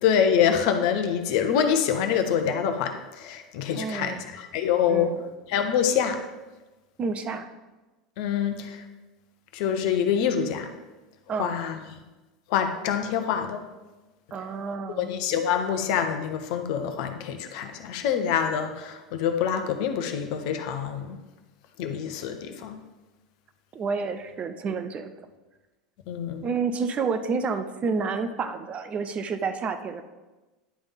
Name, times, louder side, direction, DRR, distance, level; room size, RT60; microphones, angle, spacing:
voice 1, 0.0-5.1 5.5-6.2 8.2-8.8 9.5-10.7 11.4-12.0 12.5-13.6 15.0-21.2 21.8-22.8 26.1-26.5, left 8 dB, 60° left, 6 dB, 0.9 m, -26 dB
voice 2, 3.7-4.2 4.9-5.3 7.0-7.5 11.3-11.6 14.3-15.1 23.7-25.1 26.4-30.0, right 5 dB, 35° right, 10 dB, 0.6 m, -29 dB
10.0 x 3.5 x 5.7 m, 1.1 s
hypercardioid pair, 85°, 4 cm